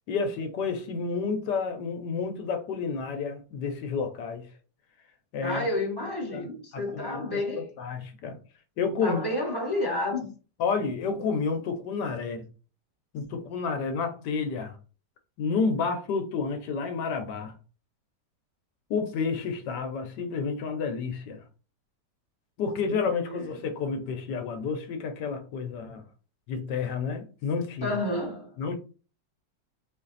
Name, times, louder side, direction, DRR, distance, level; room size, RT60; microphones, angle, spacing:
voice 1, 0.1-4.5 5.3-5.7 6.3-6.5 6.7-8.4 8.8-9.3 10.6-12.4 13.1-14.8 15.4-17.5 18.9-21.4 22.6-26.0 26.5-28.0 28.6-28.8, left 5 dB, 80° left, 1.3 m, -30 dB
voice 2, 5.4-7.7 9.0-10.3 23.1-23.5 27.8-28.8, left 1 dB, 15° left, 1.1 m, -30 dB
4.4 x 2.5 x 3.9 m
omnidirectional pair, 1.8 m